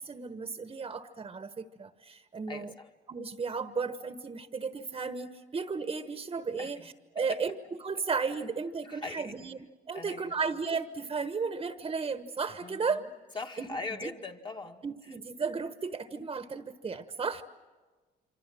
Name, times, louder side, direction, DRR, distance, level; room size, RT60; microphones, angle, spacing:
voice 1, 0.0-2.7 3.1-7.5 7.8-13.0 13.6-14.1 14.8-17.4, right 5 dB, 30° right, 10 dB, 1.2 m, -34 dB
voice 2, 2.5-2.9 6.6-6.7 7.3-7.4 8.8-9.3 9.9-10.4 12.6-13.0 13.4-15.2, left 3 dB, 25° left, 4 dB, 2.0 m, -40 dB
27.0 x 25.5 x 7.6 m, 1.3 s
cardioid pair, 90°, 17 cm